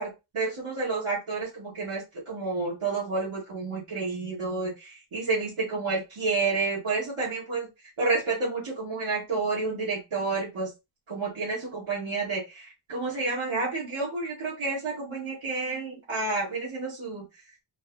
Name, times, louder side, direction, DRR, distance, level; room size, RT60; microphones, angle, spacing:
voice 1, 0.0-7.7 8.0-10.7 11.1-17.2, right 3 dB, 80° right, -7 dB, 1.9 m, -30 dB
4.4 x 2.3 x 3.0 m, 0.24 s
wide cardioid pair, 155°, 49 cm